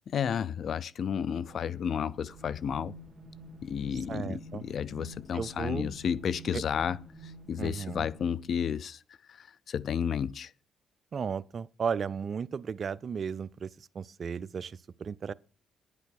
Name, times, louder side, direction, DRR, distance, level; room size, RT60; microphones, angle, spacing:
voice 1, 0.1-2.9 3.6-7.0 7.2-9.0 9.3-10.5, left 8 dB, 60° left, 0.5 m, -32 dB
sound 1, 1.2-8.8, right 2 dB, 30° right, 2.3 m, -49 dB
voice 2, 4.1-4.6 5.3-5.9 6.5-6.6 7.6-8.1 11.1-15.3, right 6 dB, 50° right, 0.6 m, -35 dB
10.5 x 8.4 x 6.6 m
cardioid pair, 90°, 0 cm